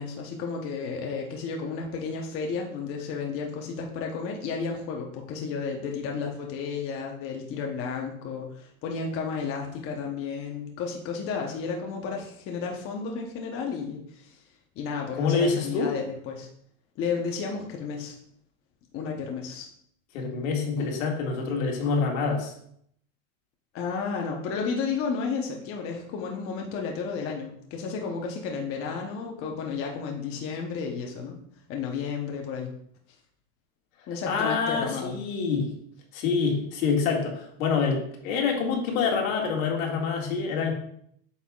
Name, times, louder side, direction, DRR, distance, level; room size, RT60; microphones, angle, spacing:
voice 1, 0.0-14.4 14.8-16.5 17.0-18.2 18.9-19.7 20.8-20.9 21.8-21.9 23.7-31.4 31.7-32.7 34.1-35.1, left 5 dB, 35° left, 1 dB, 0.9 m, -32 dB
voice 2, 15.2-15.9 20.1-22.5 34.2-35.7 36.1-40.7, left 5 dB, 75° left, 0 dB, 2.0 m, -26 dB
8.3 x 5.7 x 2.3 m, 0.69 s
supercardioid pair, 155°, 41 cm